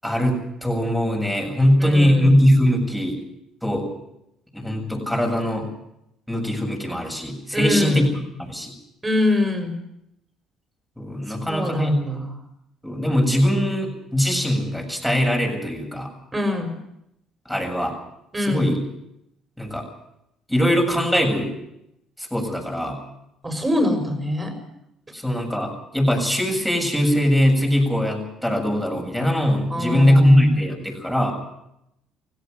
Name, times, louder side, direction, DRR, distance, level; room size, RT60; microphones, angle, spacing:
voice 1, 0.0-3.2 3.6-3.9 4.5-5.7 6.3-8.1 8.4-8.7 11.0-12.0 12.8-16.1 17.5-17.9 18.5-18.8 19.6-19.9 20.5-21.5 22.2-23.0 25.1-31.3, equal, 5° left, 2 dB, 7.6 m, -21 dB
voice 2, 1.8-2.4 7.5-8.1 9.0-9.8 11.5-12.4 16.3-16.7 18.3-18.7 23.4-24.5 29.7-30.8, left 1 dB, 20° right, 6 dB, 6.2 m, -23 dB
17.5 x 17.0 x 9.5 m, 0.81 s
hypercardioid pair, 60°, 0 cm